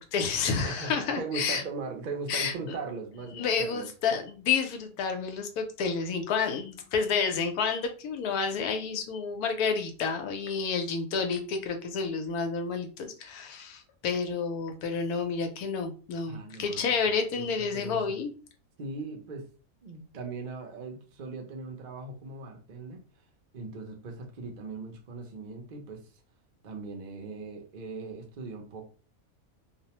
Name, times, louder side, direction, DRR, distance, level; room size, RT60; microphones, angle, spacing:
voice 1, 0.0-1.6 2.3-2.5 3.3-18.3, left 5 dB, 85° left, 5 dB, 1.1 m, -30 dB
voice 2, 0.6-3.9 16.3-18.2 18.8-19.5 19.8-23.0 23.5-26.1 26.6-28.9, right 3 dB, 55° right, 2 dB, 0.5 m, -39 dB
2.6 x 2.0 x 2.8 m, 0.37 s
omnidirectional pair, 1.6 m